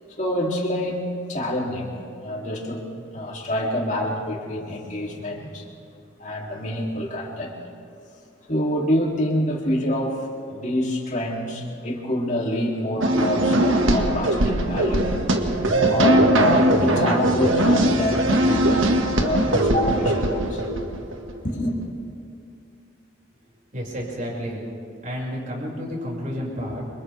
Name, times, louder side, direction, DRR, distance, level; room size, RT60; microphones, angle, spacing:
voice 1, 0.2-1.0 1.3-1.9 2.2-2.9 3.1-5.7 6.2-7.5 8.5-15.1 15.8-18.9 19.2-20.6 21.4-21.7, equal, 40° left, -2 dB, 3.3 m, -26 dB
sound 1, 13.0-21.3, right 1 dB, 90° right, 2.0 m, -20 dB
voice 2, 23.7-24.6 25.0-26.9, equal, 40° right, -4 dB, 6.3 m, -30 dB
29.5 x 26.0 x 3.6 m, 2.5 s
head